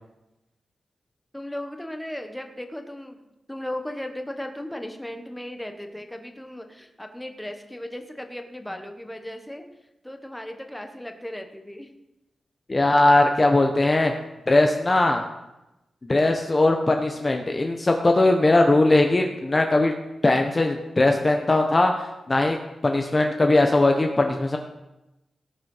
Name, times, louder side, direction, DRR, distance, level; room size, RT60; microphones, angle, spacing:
voice 1, 1.3-3.2 3.5-9.6 10.0-11.9, left 1 dB, 5° left, 5 dB, 1.3 m, -36 dB
voice 2, 12.7-14.1 14.5-15.2 16.0-19.9 20.2-22.6 22.8-24.6, left 2 dB, 25° left, 3 dB, 1.0 m, -20 dB
18.0 x 6.8 x 5.6 m, 0.96 s
wide cardioid pair, 130°, 0 cm